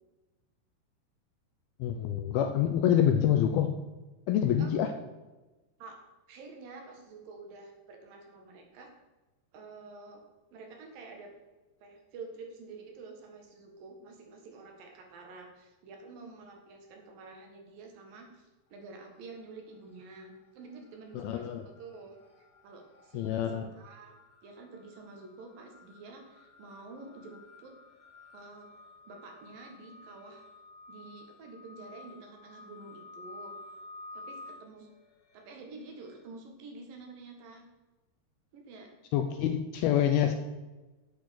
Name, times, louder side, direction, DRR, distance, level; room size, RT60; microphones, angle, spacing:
voice 1, 1.8-3.7 4.3-4.9 21.2-21.6 23.1-23.7 39.1-40.3, left 10 dB, 80° left, 7 dB, 2.3 m, -26 dB
voice 2, 6.3-8.9 9.5-10.2 10.5-11.3 11.8-22.2 22.6-27.8 28.3-28.7 29.1-30.4 30.9-33.5 34.1-34.9 35.3-37.7 38.5-38.9, right 3 dB, 60° right, 2 dB, 3.0 m, -49 dB
sound 1, 18.7-19.4 19.6-36.2, left 2 dB, 50° left, 3.2 m, -52 dB
8.7 x 8.3 x 6.4 m, 1.1 s
omnidirectional pair, 4.9 m